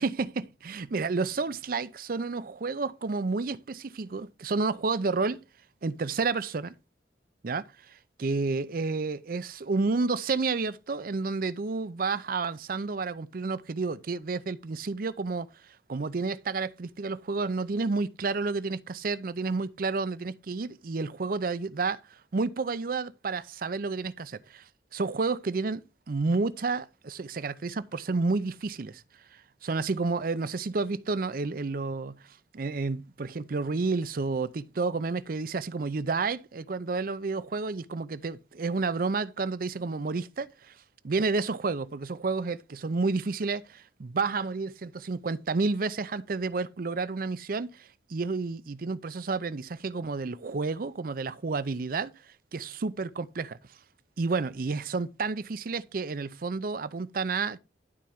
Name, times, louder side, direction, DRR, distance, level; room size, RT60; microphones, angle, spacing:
voice 1, 0.0-5.4 5.8-6.7 7.4-15.5 15.9-29.0 29.3-32.2 32.5-40.8 41.0-52.1 52.5-53.6 54.2-57.6, right 4 dB, 55° right, 0.5 m, -30 dB
11.5 x 4.4 x 3.6 m
head